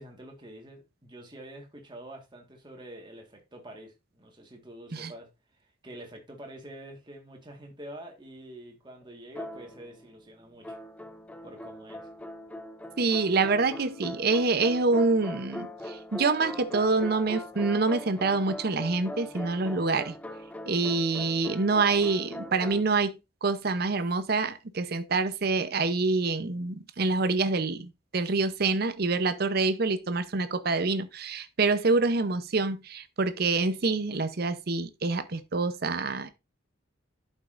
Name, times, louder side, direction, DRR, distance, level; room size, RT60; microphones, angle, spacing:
voice 1, 0.0-5.3 5.6-10.8 11.4-12.1, right 1 dB, 25° right, 1.6 m, -46 dB
sound 1, 9.4-10.2 10.6-22.8, left 1 dB, 5° left, 0.4 m, -40 dB
voice 2, 13.0-20.1 20.7-36.3, right 3 dB, 50° right, 0.7 m, -26 dB
12.0 x 5.4 x 2.5 m
head